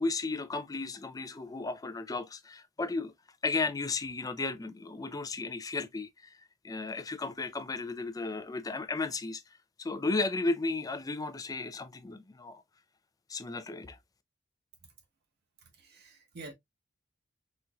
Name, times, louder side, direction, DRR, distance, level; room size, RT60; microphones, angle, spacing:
voice 1, 0.0-3.1 3.4-6.4 6.6-9.4 9.8-12.6 13.3-14.0, left 3 dB, 20° left, 0.4 m, -34 dB
voice 2, 15.8-16.5, right 3 dB, 55° right, 0.9 m, -47 dB
4.3 x 2.5 x 2.2 m
head